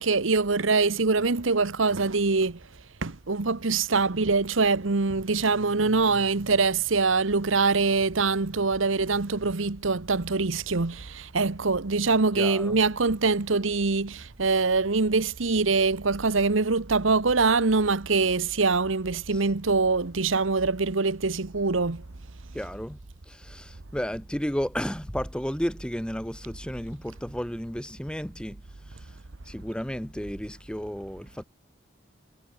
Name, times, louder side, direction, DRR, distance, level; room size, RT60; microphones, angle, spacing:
voice 1, 0.0-2.6 3.0-22.0, right 4 dB, 85° right, 1.1 m, -24 dB
voice 2, 12.3-12.8 19.3-19.4 22.5-23.0 23.3-28.6 28.9-29.1 29.5-31.4, equal, 5° left, 0.9 m, -33 dB
head